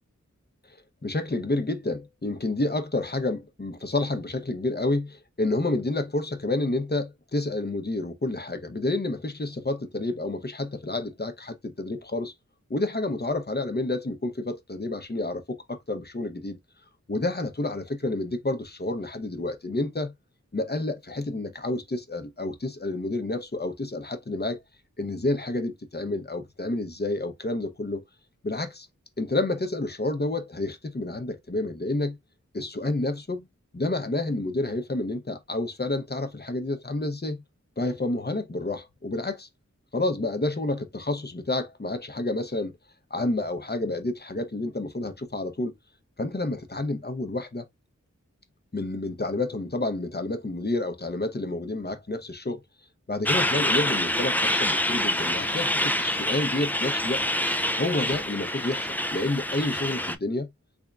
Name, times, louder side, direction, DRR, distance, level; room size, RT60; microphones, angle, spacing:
voice 1, 1.0-12.3 12.7-16.6 17.1-20.1 20.5-24.6 25.0-28.0 28.4-28.9 29.2-32.2 32.5-33.5 33.7-37.4 37.8-39.5 39.9-42.8 43.1-45.7 46.2-47.6 48.7-52.6 53.1-57.2 57.8-60.5, left 2 dB, 35° left, 0.8 m, -29 dB
Truck, 53.3-60.2, left 1 dB, 5° left, 0.4 m, -26 dB
3.5 x 3.5 x 2.4 m
wide cardioid pair, 50°, 30 cm